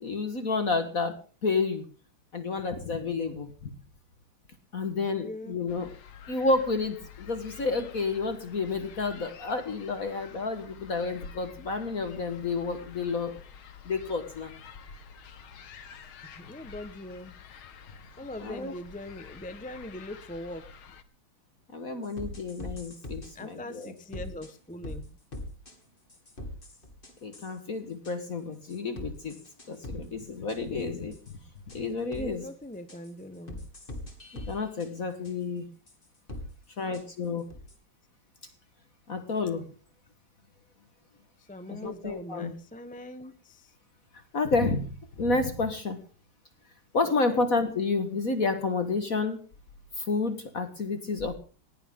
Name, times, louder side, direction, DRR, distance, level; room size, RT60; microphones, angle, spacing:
voice 1, 0.0-1.2 1.4-1.9 2.3-3.7 4.7-5.9 6.3-13.4 13.9-14.5 18.4-18.7 21.7-23.9 27.2-29.4 29.7-31.2 31.7-32.5 34.3-35.7 36.8-37.4 39.1-39.6 41.7-42.5 44.3-44.9 45.2-46.0 46.9-49.4 50.0-51.3, left 3 dB, 45° left, 8 dB, 1.8 m, -30 dB
voice 2, 5.1-5.6 16.4-17.3 18.2-20.7 23.3-25.1 32.1-33.7 41.5-43.7 47.0-47.4, left 1 dB, 5° left, 9 dB, 0.7 m, -41 dB
sound 1, 5.7-21.0, left 7 dB, 85° left, 2.2 m, -49 dB
sound 2, 22.0-23.3 23.8-24.5 24.8-25.0 25.3-25.7 26.1-27.5 28.0-28.1 28.7-30.2 30.5-30.6 31.1-31.3 31.7-31.8 32.1-32.3 32.9-33.1 33.5-34.9 35.2-35.3 35.9-36.0 36.3-36.5 36.9-37.0 37.5-37.7, left 1 dB, 25° left, 2.7 m, -41 dB
19.0 x 17.0 x 3.8 m, 0.40 s
omnidirectional pair, 2.2 m